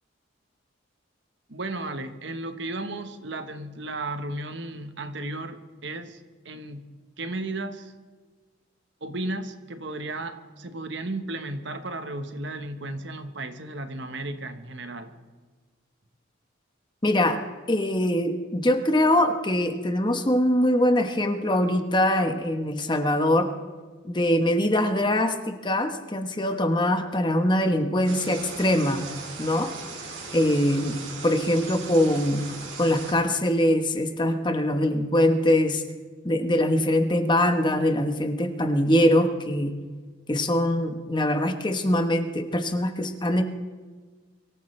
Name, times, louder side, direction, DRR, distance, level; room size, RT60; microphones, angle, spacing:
voice 1, 1.5-7.9 9.0-15.1, right 2 dB, 65° right, 8 dB, 1.2 m, -34 dB
voice 2, 17.0-17.4 17.7-23.5 24.0-29.1 29.4-29.7 30.3-31.0 31.2-32.5 32.8-35.8 36.2-39.7 40.3-43.4, left 1 dB, 25° left, 6 dB, 1.1 m, -23 dB
sound 1, 28.0-33.1, right 4 dB, 85° right, 4.0 m, -38 dB
24.0 x 14.0 x 3.3 m, 1.4 s
head